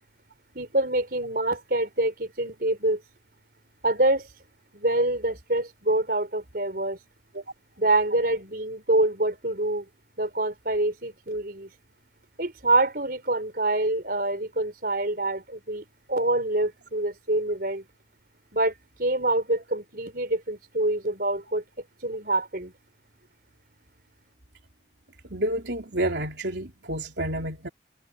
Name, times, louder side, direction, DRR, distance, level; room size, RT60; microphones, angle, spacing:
voice 1, 0.5-3.0 3.8-4.3 4.7-7.0 7.8-9.8 10.2-11.7 12.4-17.8 18.5-18.7 19.0-21.6 22.0-22.7, right 2 dB, 55° right, 4.9 m, -26 dB
voice 2, 25.3-27.7, right 1 dB, 75° right, 3.5 m, -29 dB
head